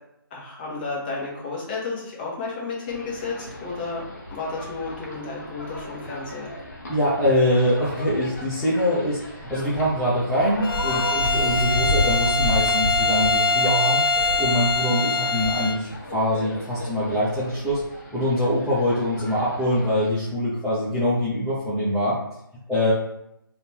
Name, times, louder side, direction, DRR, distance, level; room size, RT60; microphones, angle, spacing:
voice 1, 0.3-4.0 4.3-6.5, left 4 dB, 25° left, -5 dB, 1.5 m, -32 dB
sound 1, 2.9-20.1, left 1 dB, 45° left, 1.2 m, -33 dB
voice 2, 6.9-14.0 14.4-17.8 18.1-22.2 22.7-22.9, equal, ahead, -14 dB, 0.7 m, -23 dB
Bowed string instrument, 10.6-15.9, left 3 dB, 70° left, 0.4 m, -23 dB
4.0 x 2.9 x 3.6 m, 0.81 s
figure-of-eight pair, 150°, 12 cm